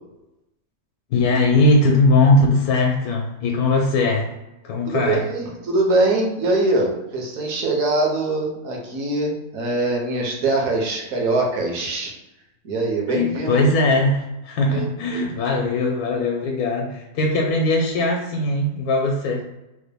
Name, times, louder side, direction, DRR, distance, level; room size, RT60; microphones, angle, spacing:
voice 1, 1.1-4.3 4.6-5.2 13.1-19.4, left 2 dB, 85° left, 1 dB, 1.1 m, -20 dB
voice 2, 4.9-12.1 12.6-13.6 14.7-15.2, right 2 dB, 70° right, -1 dB, 1.2 m, -23 dB
3.4 x 2.2 x 3.3 m, 0.96 s
omnidirectional pair, 1.5 m